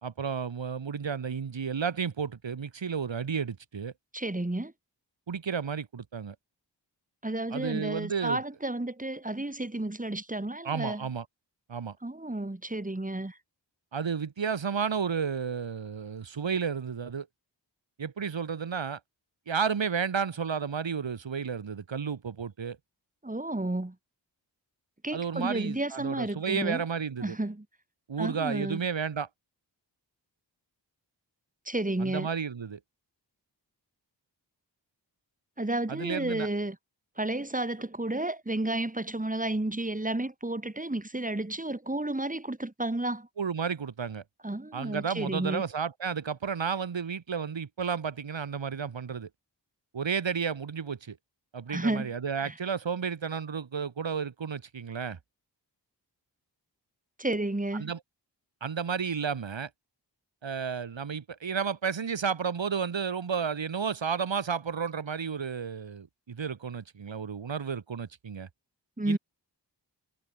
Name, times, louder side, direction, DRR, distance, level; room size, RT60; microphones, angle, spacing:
voice 1, 0.0-3.9 5.3-6.3 7.5-8.4 10.6-11.2 11.7-12.0 13.9-17.3 18.0-19.0 19.5-22.8 25.1-27.3 28.1-29.3 32.0-32.8 35.9-36.5 43.4-44.2 44.7-49.3 49.9-51.2 51.5-55.2 57.8-58.0 58.6-59.7 60.4-68.5 69.1-69.2, right 6 dB, 90° right, 3.4 m, -32 dB
voice 2, 4.1-4.7 7.2-11.1 12.0-13.4 23.2-24.0 25.0-26.8 27.2-27.6 28.2-28.8 31.7-32.3 35.6-36.8 37.2-43.3 44.4-45.6 51.7-52.1 52.4-52.5 57.2-57.9 69.0-69.2, right 2 dB, 20° right, 4.0 m, -31 dB
wide cardioid pair, 60°, 44 cm